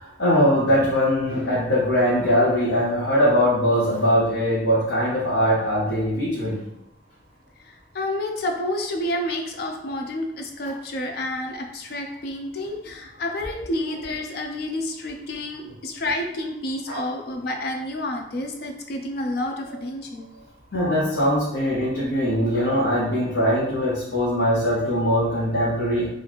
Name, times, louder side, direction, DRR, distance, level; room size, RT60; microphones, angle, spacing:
voice 1, 0.2-6.6 16.9-17.0 20.7-26.1, equal, 85° left, -7 dB, 0.9 m, -21 dB
voice 2, 7.6-20.3 20.7-20.8, left 1 dB, 60° left, 3 dB, 0.4 m, -29 dB
3.1 x 2.4 x 4.0 m, 0.85 s
head